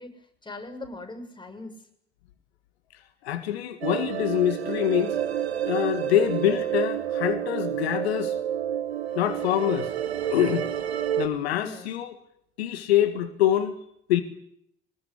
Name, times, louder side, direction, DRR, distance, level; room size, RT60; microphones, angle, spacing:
voice 1, 0.0-1.8 11.5-11.9, left 2 dB, 15° left, 3 dB, 6.7 m, -40 dB
voice 2, 3.2-5.2 5.6-8.4 9.2-9.9 10.3-10.6 11.2-12.2 12.6-13.8 14.1-14.2, left 12 dB, 75° left, 9 dB, 1.8 m, -25 dB
sound 1, 3.8-11.3, right 10 dB, 80° right, 2.0 m, -29 dB
23.5 x 20.0 x 9.9 m, 0.73 s
figure-of-eight pair, 55°, 31 cm